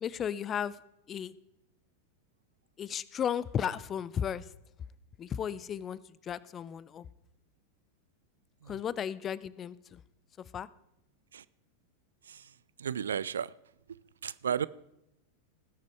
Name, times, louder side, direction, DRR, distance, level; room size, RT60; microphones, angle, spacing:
voice 1, 0.0-0.8 1.1-1.3 2.8-4.4 5.2-7.1 8.7-10.0 10.5-10.7, left 8 dB, 25° left, 20 dB, 0.4 m, -34 dB
voice 2, 12.8-13.5 13.9-14.7, right 8 dB, 65° right, 19 dB, 0.3 m, -34 dB
19.0 x 6.7 x 4.6 m, 0.83 s
figure-of-eight pair, 90°, 0 cm